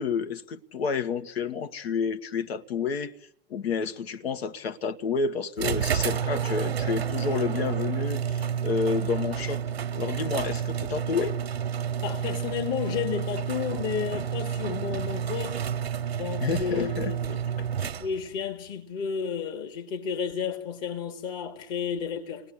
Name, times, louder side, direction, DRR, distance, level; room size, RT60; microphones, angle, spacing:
voice 1, 0.0-3.1 3.5-9.6 9.9-11.4 16.4-17.1 17.6-17.9, left 5 dB, 80° left, 1.5 m, -30 dB
sound 1, 5.6-18.4, right 8 dB, 90° right, 1.0 m, -30 dB
voice 2, 12.0-15.6 16.1-17.4 18.0-22.5, left 7 dB, 50° left, 2.9 m, -32 dB
28.5 x 19.5 x 10.0 m
hypercardioid pair, 95°, 30 cm